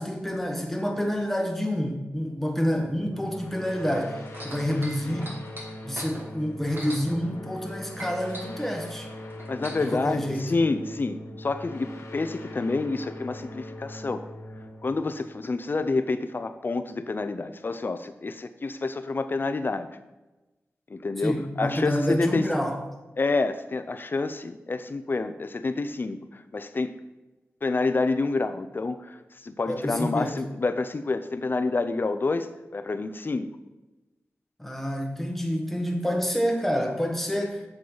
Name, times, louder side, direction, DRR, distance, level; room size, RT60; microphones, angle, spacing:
voice 1, 0.0-5.4 5.8-9.1 9.8-10.5 21.2-22.8 29.7-30.4 34.6-37.6, equal, 5° left, 2 dB, 1.3 m, -28 dB
sound 1, 2.8-16.1, left 1 dB, 65° left, 1.4 m, -41 dB
sound 2, 4.3-7.7 8.0-10.0 10.8-10.9, right 1 dB, 45° right, 2.3 m, -41 dB
voice 2, 9.5-14.2 14.8-19.9 20.9-22.5 23.2-27.0 27.6-29.2 29.4-32.5 32.7-33.5, left 3 dB, 45° left, 11 dB, 0.5 m, -28 dB
7.5 x 7.3 x 4.0 m, 1.1 s
wide cardioid pair, 95°, 5 cm